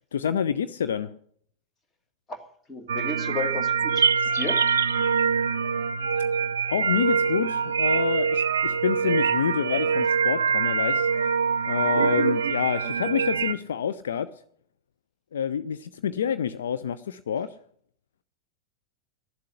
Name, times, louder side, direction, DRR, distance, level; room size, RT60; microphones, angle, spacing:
voice 1, 0.1-1.1 6.7-11.1 11.7-14.3 15.3-17.5, left 8 dB, 65° left, 11 dB, 0.6 m, -28 dB
voice 2, 2.7-4.1 4.3-4.6, left 2 dB, 20° left, 7 dB, 2.1 m, -32 dB
sound 1, 2.9-13.5, right 6 dB, 65° right, 0.5 m, -24 dB
12.5 x 7.6 x 9.8 m, 0.62 s
figure-of-eight pair, 90°, 0 cm